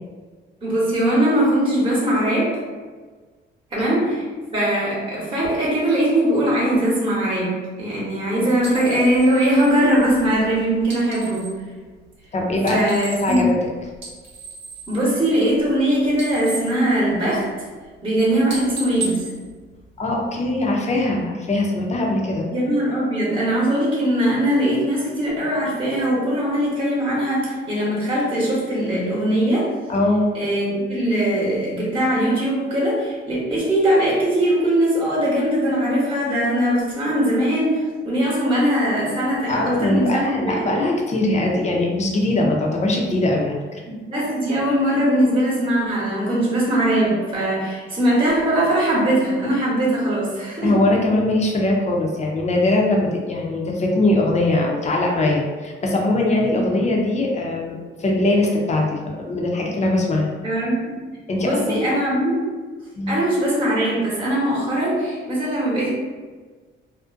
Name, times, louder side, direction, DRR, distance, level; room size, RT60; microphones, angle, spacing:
voice 1, 0.6-2.5 3.7-4.3 4.5-11.6 12.7-13.5 14.9-17.5 18.0-19.3 22.5-29.7 30.3-40.7 43.9-50.7 60.4-60.9 61.4-62.4 63.1-65.9, right 1 dB, 25° right, -6 dB, 0.9 m, -20 dB
sound 1, 8.6-11.6 12.5-13.6 13.9-15.8 16.1-17.6 18.0-18.2 18.5-20.3, right 3 dB, 85° right, 1.0 m, -36 dB
voice 2, 12.3-13.6 20.0-22.5 29.9-30.3 39.5-43.8 50.6-60.3 61.3-61.8 63.0-63.2, left 2 dB, 35° left, -1 dB, 0.6 m, -21 dB
2.5 x 2.1 x 2.5 m, 1.4 s
cardioid pair, 90°, 20 cm